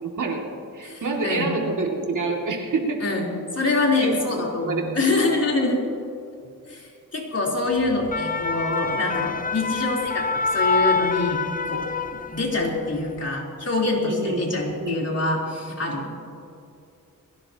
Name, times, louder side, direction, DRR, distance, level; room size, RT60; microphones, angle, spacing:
voice 1, 0.0-3.0 4.0-4.9 14.0-15.1 15.9-16.1, right 3 dB, 60° right, 0 dB, 2.7 m, -28 dB
voice 2, 0.8-1.5 3.0-3.2 3.5-5.8 6.7-10.2 10.5-11.4 11.7-11.9 12.3-16.1, left 2 dB, 45° left, -3 dB, 4.0 m, -25 dB
sound 1, 7.8-12.6 13.0-13.2, left 4 dB, 25° left, 0.6 m, -26 dB
21.5 x 16.5 x 3.0 m, 2.6 s
cardioid pair, 75°, 34 cm